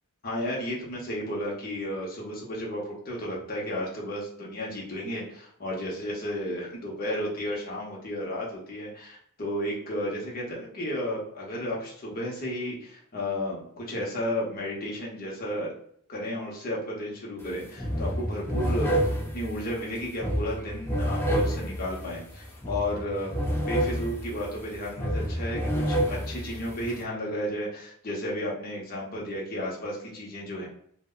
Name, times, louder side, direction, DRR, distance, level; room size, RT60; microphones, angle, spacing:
voice 1, 0.2-15.7 16.1-23.3 23.7-30.7, equal, 45° left, -3 dB, 0.7 m, -33 dB
sound 1, 17.4-17.5 17.8-27.0, equal, 10° left, 0.4 m, -29 dB
2.1 x 2.0 x 3.5 m, 0.64 s
head